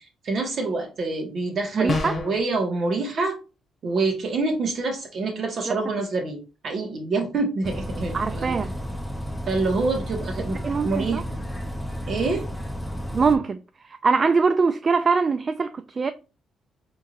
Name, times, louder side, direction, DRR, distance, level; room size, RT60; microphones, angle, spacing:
voice 1, 0.2-3.4 3.8-8.6 9.5-11.4 12.1-12.4, right 3 dB, 55° right, 1.6 m, -26 dB
voice 2, 1.7-2.2 5.7-5.8 8.1-8.7 10.6-11.2 13.1-13.6 13.8-16.1, right 4 dB, 35° right, 0.3 m, -22 dB
sound 1, 1.9-2.4, left 4 dB, 45° left, 1.0 m, -27 dB
Bus, 7.6-13.4, equal, ahead, 0.8 m, -32 dB
4.6 x 3.8 x 2.6 m
cardioid pair, 90°, 0 cm